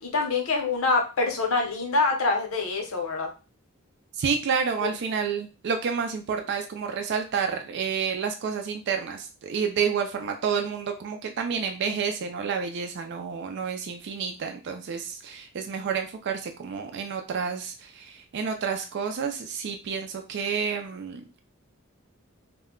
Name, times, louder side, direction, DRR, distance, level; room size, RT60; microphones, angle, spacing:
voice 1, 0.0-3.3 4.8-4.9, left 3 dB, 85° left, 2 dB, 0.8 m, -25 dB
voice 2, 4.2-21.4, right 6 dB, 55° right, 5 dB, 0.4 m, -29 dB
2.2 x 2.1 x 3.6 m, 0.32 s
head